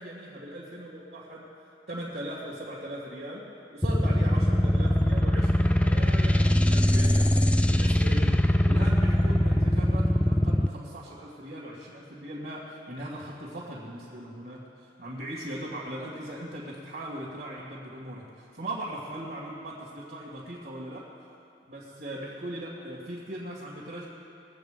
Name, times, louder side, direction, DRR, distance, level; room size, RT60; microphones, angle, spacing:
voice 1, 0.0-1.4 1.9-3.5 3.7-7.4 7.7-8.4 8.7-21.1 21.7-24.1, right 1 dB, 55° right, -6 dB, 2.4 m, -39 dB
sound 1, 3.8-10.7, left 1 dB, 5° left, 0.4 m, -22 dB
21.5 x 8.0 x 5.2 m, 2.6 s
head